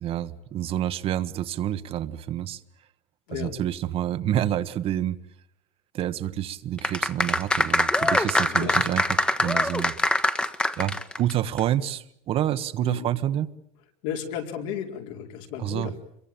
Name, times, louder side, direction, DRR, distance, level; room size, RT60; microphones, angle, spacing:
voice 1, 0.0-2.6 3.3-5.2 5.9-9.0 9.4-9.9 10.8-13.5 15.6-15.9, right 11 dB, 45° right, 12 dB, 1.2 m, -28 dB
sound 1, 6.8-11.3 11.6-11.7, left 1 dB, 5° left, 1.2 m, -23 dB
voice 2, 8.3-8.8 12.8-13.1 14.0-15.9, left 9 dB, 75° left, 3 dB, 4.5 m, -34 dB
27.5 x 23.0 x 8.9 m, 0.73 s
cardioid pair, 145°, 14 cm